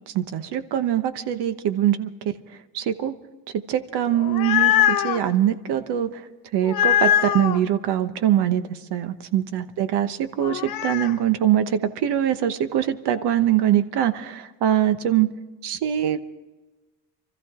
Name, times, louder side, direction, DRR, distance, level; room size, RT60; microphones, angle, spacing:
voice 1, 0.0-2.1 2.7-3.1 3.7-6.2 6.5-15.3 15.6-16.3, right 11 dB, 85° right, 11 dB, 1.1 m, -23 dB
sound 1, 4.1-5.2 6.6-7.6 10.4-11.1, left 11 dB, 60° left, 0.8 m, -21 dB
25.0 x 14.0 x 3.7 m, 1.2 s
cardioid pair, 105°, 39 cm